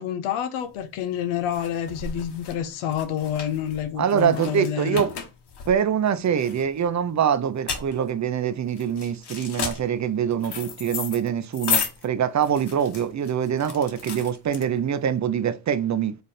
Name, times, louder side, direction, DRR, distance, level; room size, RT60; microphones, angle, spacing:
voice 1, 0.0-5.0, left 9 dB, 85° left, 0.6 m, -28 dB
sound 1, 0.7-15.1, left 6 dB, 55° left, 1.1 m, -34 dB
voice 2, 4.0-5.1 5.7-16.2, right 8 dB, 35° right, 0.5 m, -24 dB
3.3 x 2.5 x 4.2 m
supercardioid pair, 55°, 48 cm